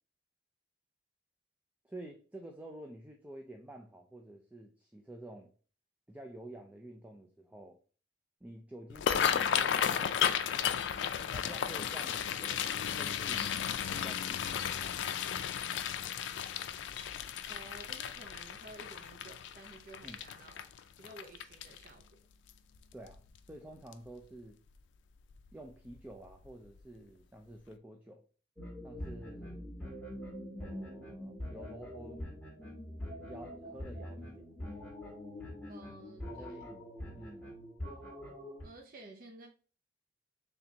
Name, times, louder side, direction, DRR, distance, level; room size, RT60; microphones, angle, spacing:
voice 1, 1.8-5.5 6.1-7.8 8.4-10.6 11.3-13.6 13.9-15.2 20.0-20.2 22.9-24.6 25.5-28.2 28.8-29.7 30.6-32.2 33.2-34.5 36.3-36.9 37.1-37.5, right 1 dB, 10° right, 0.4 m, -50 dB
sound 1, 8.9-22.0 22.5-22.8 23.1-23.5 23.9-24.1 25.3-25.5 25.8-26.0 26.4-26.5, left 8 dB, 85° left, 0.4 m, -34 dB
voice 2, 17.5-20.6 21.0-22.2 35.7-36.7 38.6-39.5, right 2 dB, 50° right, 0.6 m, -53 dB
sound 2, 28.6-38.6, left 1 dB, 5° left, 1.4 m, -44 dB
4.1 x 3.4 x 2.8 m
head